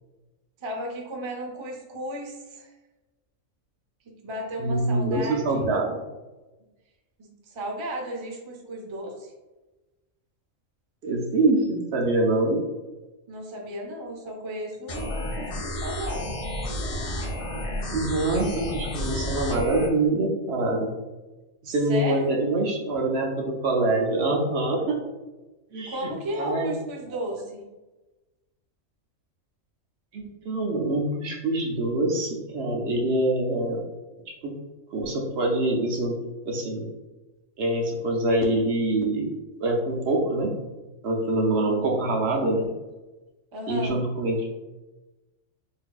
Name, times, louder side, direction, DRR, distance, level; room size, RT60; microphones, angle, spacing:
voice 1, 0.6-2.7 4.2-5.7 7.2-9.3 13.3-16.3 21.7-22.3 25.9-27.6 41.6-41.8 43.5-44.0, equal, 50° right, 0 dB, 0.3 m, -34 dB
voice 2, 4.6-6.0 11.0-12.6 17.9-20.9 21.6-25.0 25.7-26.1 26.4-26.7 27.1-27.3 30.1-33.8 34.3-34.5 34.9-36.1 36.5-36.9 37.6-39.3 39.6-40.5 41.0-42.7 43.7-44.5, right 2 dB, 65° right, 0 dB, 0.7 m, -25 dB
sound 1, 14.9-19.9, left 1 dB, 65° left, 0.3 m, -31 dB
4.0 x 2.7 x 2.3 m, 1.1 s
omnidirectional pair, 1.4 m